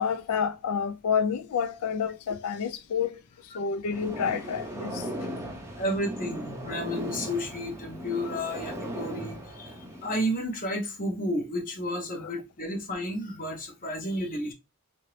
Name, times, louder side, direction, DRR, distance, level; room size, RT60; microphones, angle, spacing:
voice 1, 0.0-3.2 3.5-5.0, left 6 dB, 75° left, 0.4 m, -29 dB
sound 1, 3.9-10.3, equal, 10° right, 0.6 m, -37 dB
voice 2, 5.8-14.5, equal, 40° left, 0.9 m, -32 dB
2.8 x 2.7 x 3.0 m
head